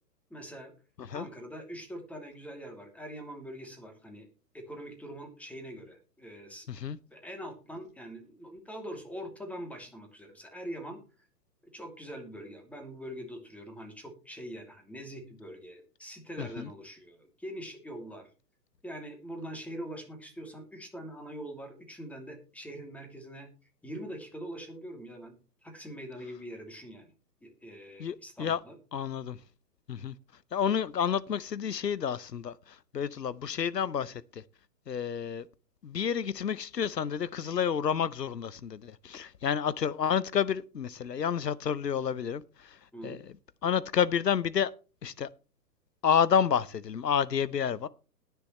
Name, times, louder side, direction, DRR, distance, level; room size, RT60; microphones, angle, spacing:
voice 1, 0.3-0.7 1.1-4.3 4.5-6.7 7.1-11.0 11.7-18.3 18.8-23.5 23.8-25.3 25.6-27.1 27.4-28.8 42.9-43.2, equal, 5° left, 2.6 m, -43 dB
voice 2, 16.4-16.7 28.0-28.6 28.9-29.4 29.9-30.1 30.5-34.4 34.9-35.5 35.8-43.3 43.6-44.7 45.0-45.3 46.0-47.9, left 8 dB, 90° left, 0.7 m, -30 dB
20.0 x 6.9 x 3.1 m
figure-of-eight pair, 115°, 48 cm